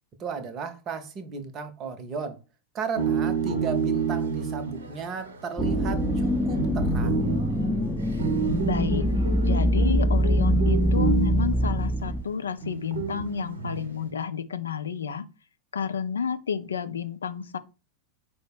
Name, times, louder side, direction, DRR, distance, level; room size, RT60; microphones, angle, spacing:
voice 1, 0.2-2.4 2.7-7.3, right 5 dB, 30° right, 0.8 m, -34 dB
sound 1, 3.0-11.9 12.6-14.0, right 5 dB, 65° right, 1.0 m, -30 dB
sound 2, 5.6-12.2, equal, ahead, 0.5 m, -24 dB
voice 2, 8.6-15.2 15.7-17.6, left 6 dB, 70° left, 0.4 m, -30 dB
4.8 x 2.1 x 4.7 m
figure-of-eight pair, 90°, 0 cm